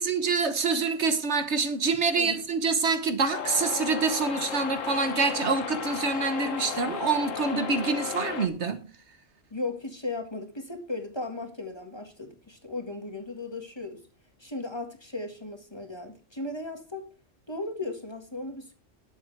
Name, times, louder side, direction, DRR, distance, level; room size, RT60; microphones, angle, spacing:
voice 1, 0.0-8.8, right 4 dB, 65° right, 1.4 m, -26 dB
sound 1, 3.3-8.5, left 7 dB, 80° left, 1.3 m, -34 dB
voice 2, 9.5-14.0 14.4-17.1 17.5-18.7, left 2 dB, 20° left, 1.8 m, -36 dB
19.5 x 7.3 x 3.3 m
omnidirectional pair, 1.3 m